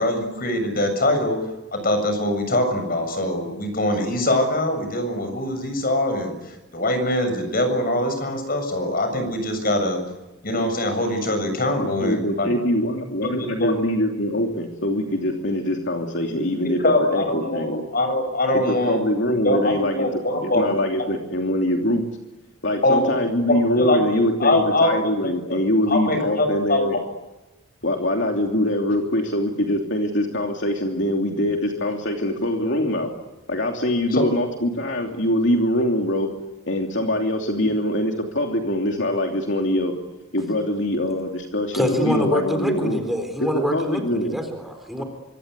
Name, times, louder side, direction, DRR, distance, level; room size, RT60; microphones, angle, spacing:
voice 1, 0.0-1.4 1.7-10.0 10.4-12.5 13.4-13.8 16.3-16.4 16.8-19.0 19.4-21.1 22.8-23.1 23.5-24.9 25.2-25.6 25.9-26.9 34.1-34.2, left 1 dB, 45° left, 7 dB, 7.3 m, -23 dB
voice 2, 11.8-17.8 18.5-22.0 22.6-27.0 27.8-33.1 33.5-36.3 36.7-39.9 40.3-43.0 43.4-44.4 45.0-45.1, left 1 dB, 60° left, 2 dB, 3.0 m, -23 dB
voice 3, 41.7-45.0, equal, ahead, 5 dB, 4.0 m, -25 dB
25.5 x 25.5 x 8.3 m, 1.0 s
head